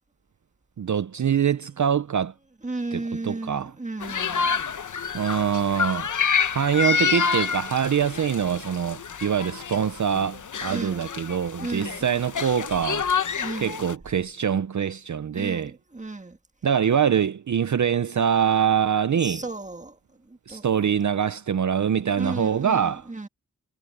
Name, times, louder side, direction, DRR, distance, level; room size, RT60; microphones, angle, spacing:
voice 1, 0.8-2.3 3.2-3.7 5.1-6.1 6.5-13.1 13.6-15.7 16.6-19.4 20.5-23.0, right 8 dB, 55° right, 0.6 m, -24 dB
voice 2, 2.6-4.5 10.7-11.1 11.6-12.1 13.4-13.9 15.3-16.4 19.1-20.0 20.3-20.6 22.1-23.3, right 2 dB, 20° right, 1.6 m, -34 dB
sound 1, 4.0-13.9, left 6 dB, 55° left, 0.8 m, -28 dB
wide cardioid pair, 115°, 36 cm